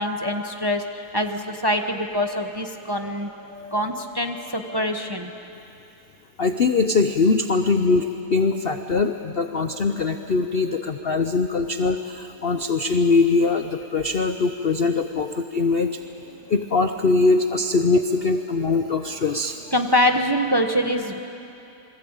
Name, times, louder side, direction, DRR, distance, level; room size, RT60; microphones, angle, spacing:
voice 1, 0.0-5.3 9.7-9.8 10.6-10.7 11.0-11.4 15.8-15.9 16.3-16.4 19.7-21.2, equal, 15° right, 5 dB, 0.9 m, -25 dB
voice 2, 6.4-16.0 16.5-19.6, left 4 dB, 50° left, 7 dB, 0.7 m, -22 dB
28.0 x 22.0 x 8.9 m, 2.8 s
omnidirectional pair, 1.9 m